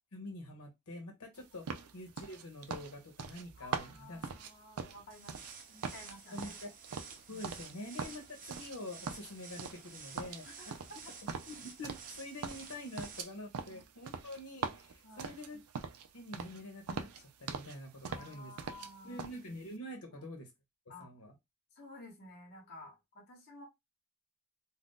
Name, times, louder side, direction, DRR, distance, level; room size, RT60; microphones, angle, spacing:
voice 1, 0.1-4.3 6.3-6.7 7.3-10.7 11.5-15.6 16.1-18.5 19.0-20.5 21.0-21.3, left 1 dB, 85° left, 3 dB, 0.9 m, -46 dB
sound 1, 1.7-5.6 5.8-7.7 8.0-8.8 9.1-9.9 10.2-12.2 12.4-16.1 16.3-16.6 16.9-17.8 18.0-18.9 19.2-19.4, right 5 dB, 90° right, 0.4 m, -42 dB
voice 2, 3.5-5.4 5.7-6.5 7.5-7.6 10.4-10.7 11.0-11.1 13.7-13.8 15.0-15.4 18.1-19.2 20.2-20.3 20.9-21.1 21.7-23.7, left 2 dB, 45° left, 2 dB, 1.0 m, -53 dB
sound 2, 5.1-13.2, right 5 dB, 40° right, 0.7 m, -51 dB
2.6 x 2.3 x 3.6 m, 0.19 s
head